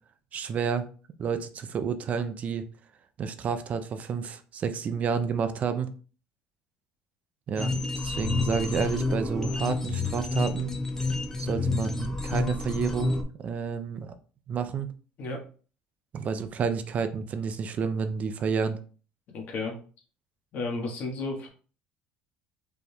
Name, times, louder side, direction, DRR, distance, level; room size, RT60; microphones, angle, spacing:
voice 1, 0.3-0.9 1.2-2.6 3.2-5.9 7.5-10.7 11.4-14.1 14.5-14.9 16.1-18.8, right 6 dB, 45° right, 10 dB, 0.5 m, -30 dB
sound 1, 7.6-13.2, left 3 dB, 15° left, 0.7 m, -29 dB
voice 2, 19.3-19.8 20.5-21.5, left 3 dB, 60° left, 1 dB, 1.5 m, -32 dB
4.9 x 3.3 x 2.3 m, 0.39 s
supercardioid pair, 100°, 3 cm